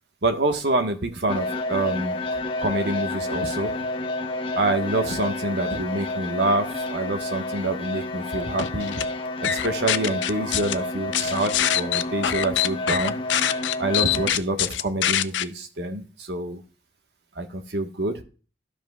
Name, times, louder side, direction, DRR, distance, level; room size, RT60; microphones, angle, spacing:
voice 1, 0.2-3.7 4.6-9.0 9.4-13.1 13.8-16.6 17.4-18.2, right 2 dB, 70° right, 5 dB, 1.2 m, -26 dB
sound 1, 1.3-14.3, left 2 dB, 30° left, 0.9 m, -30 dB
sound 2, 8.6-9.0 9.4-10.7 11.1-15.4, left 11 dB, 90° left, 0.5 m, -24 dB
14.0 x 5.2 x 2.3 m, 0.36 s
head